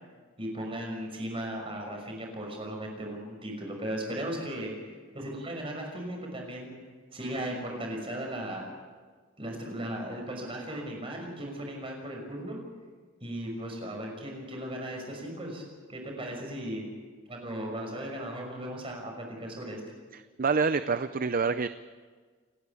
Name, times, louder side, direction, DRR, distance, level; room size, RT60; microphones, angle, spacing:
voice 1, 0.4-4.7 5.1-6.8 7.1-8.7 9.4-12.6 13.2-15.6 15.9-16.8 17.3-19.8, right 1 dB, 25° right, 1 dB, 6.0 m, -36 dB
voice 2, 20.4-21.7, right 5 dB, 45° right, 12 dB, 0.6 m, -26 dB
29.5 x 12.0 x 8.5 m, 1.5 s
head